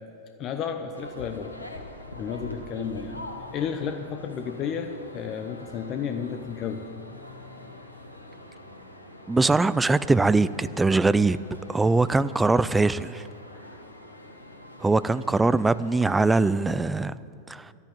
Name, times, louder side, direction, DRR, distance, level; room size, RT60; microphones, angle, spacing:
voice 1, 0.4-1.5 2.1-3.2 3.5-6.9, left 7 dB, 35° left, 6 dB, 0.8 m, -32 dB
sound 1, 0.9-16.5, left 1 dB, 85° left, 1.3 m, -44 dB
voice 2, 9.3-11.4 11.7-13.2 14.8-17.2 17.5-17.7, right 3 dB, 10° right, 16 dB, 0.4 m, -22 dB
11.5 x 9.5 x 9.3 m, 2.5 s
figure-of-eight pair, 90°, 0 cm